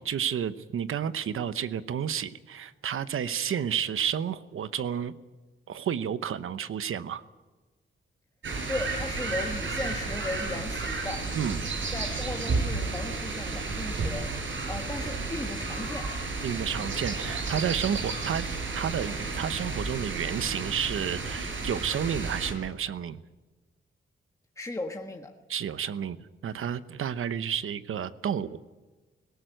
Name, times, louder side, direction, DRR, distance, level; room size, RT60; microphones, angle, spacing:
voice 1, 0.0-5.1 5.7-7.2 11.3-11.8 16.4-18.4 18.7-23.2 25.5-26.2 26.4-28.5, right 8 dB, 90° right, 14 dB, 0.9 m, -31 dB
sound 1, 8.4-22.5, right 3 dB, 65° right, 4.9 m, -32 dB
voice 2, 8.7-11.3 11.9-14.3 14.7-16.1 24.6-25.3, left 2 dB, 15° left, 3 dB, 1.4 m, -36 dB
19.0 x 17.5 x 9.1 m, 1.2 s
wide cardioid pair, 125°, 21 cm